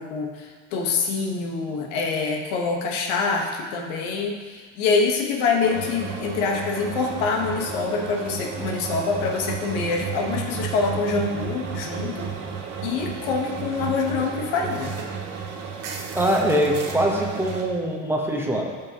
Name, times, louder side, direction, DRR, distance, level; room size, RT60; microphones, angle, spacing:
voice 1, 0.0-12.3 12.8-15.0, left 4 dB, 75° left, 1 dB, 1.3 m, -25 dB
sound 1, 5.6-17.6, right 6 dB, 45° right, 1.1 m, -33 dB
voice 2, 16.1-18.7, right 1 dB, 5° right, -1 dB, 1.0 m, -23 dB
13.0 x 5.0 x 3.0 m, 1.5 s
supercardioid pair, 120°, 35 cm